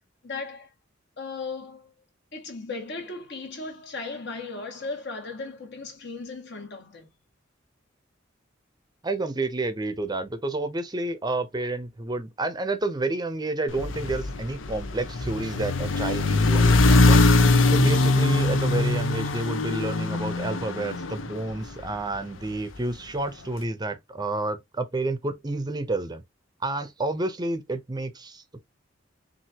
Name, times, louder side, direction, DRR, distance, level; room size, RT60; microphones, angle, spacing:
voice 1, 0.2-0.7 1.2-2.1 2.3-7.1, left 3 dB, 60° left, 1.8 m, -36 dB
voice 2, 9.0-17.3 17.7-26.2 26.6-28.6, right 2 dB, 20° right, 0.7 m, -30 dB
sound 1, 13.7-22.0, left 2 dB, 85° left, 0.7 m, -22 dB
5.8 x 2.7 x 2.8 m
head